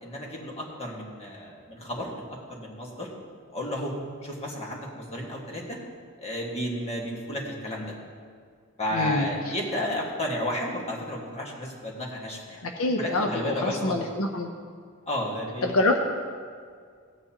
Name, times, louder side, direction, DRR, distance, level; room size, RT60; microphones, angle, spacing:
voice 1, 0.0-2.2 2.5-3.1 3.5-4.0 4.2-5.8 6.2-7.9 8.8-12.6 13.0-14.1 15.1-15.9, left 1 dB, 30° left, -2 dB, 1.7 m, -32 dB
voice 2, 8.9-9.3 12.6-14.5 15.6-16.0, left 2 dB, 70° left, 2 dB, 0.7 m, -26 dB
16.0 x 9.1 x 2.9 m, 2.1 s
head